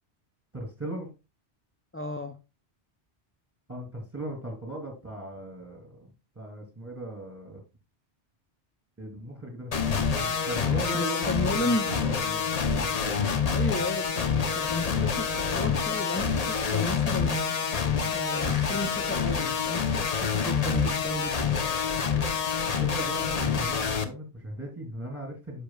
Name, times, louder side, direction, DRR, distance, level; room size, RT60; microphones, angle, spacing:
voice 1, 0.5-1.1 3.7-6.1 6.3-7.6 9.0-11.3 11.6-13.4 22.8-25.6, right 1 dB, 10° right, 1 dB, 2.7 m, -38 dB
voice 2, 1.9-2.4 10.9-11.9 13.5-14.2 14.6-17.8 18.1-21.4, left 1 dB, 20° left, 4 dB, 0.3 m, -33 dB
sound 1, 9.7-24.0, left 6 dB, 40° left, 0.7 m, -27 dB
10.0 x 6.7 x 2.3 m, 0.28 s
omnidirectional pair, 1.1 m